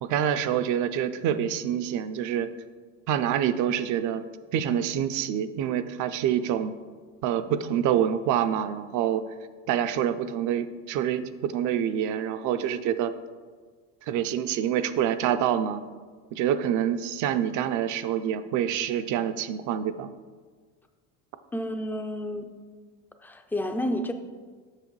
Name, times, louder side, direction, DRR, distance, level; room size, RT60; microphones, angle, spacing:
voice 1, 0.0-2.5 3.1-4.2 4.5-6.7 7.2-9.2 9.7-13.1 14.0-15.8 16.3-20.1, right 9 dB, 55° right, 11 dB, 0.5 m, -26 dB
voice 2, 21.5-22.5 23.2-24.1, left 1 dB, 5° left, 6 dB, 0.3 m, -30 dB
7.5 x 6.4 x 3.2 m, 1.5 s
cardioid pair, 125°, 35 cm